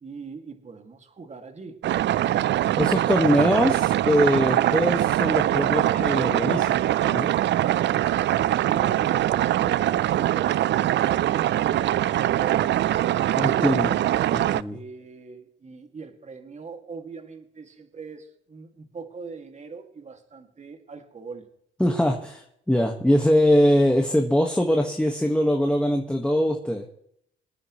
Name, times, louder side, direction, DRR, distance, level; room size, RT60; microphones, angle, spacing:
voice 1, 0.0-1.8 8.6-13.9 14.7-21.5, right 4 dB, 35° right, 5 dB, 2.3 m, -41 dB
sound 1, 1.8-14.6, right 13 dB, 65° right, 0.5 m, -22 dB
voice 2, 2.7-7.3 13.3-14.0 14.3-14.8 21.8-26.9, equal, 5° left, 3 dB, 1.6 m, -22 dB
25.5 x 9.6 x 3.2 m, 0.71 s
cardioid pair, 90°, 20 cm